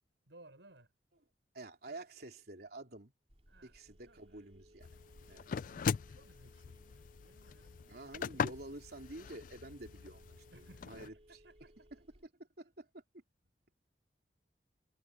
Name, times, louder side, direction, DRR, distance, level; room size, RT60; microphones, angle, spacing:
voice 1, 0.3-0.9 1.9-2.0 3.5-4.2 5.2-7.8 10.5-11.9, right 2 dB, 90° right, 6.0 m, -62 dB
voice 2, 1.5-3.1 3.6-4.9 5.3-5.5 7.9-11.2 12.6-13.0, right 2 dB, 60° right, 3.5 m, -49 dB
Telephone, 3.3-12.3, equal, 35° right, 3.7 m, -63 dB
sound 1, 4.8-11.1, left 6 dB, 50° left, 0.3 m, -41 dB
head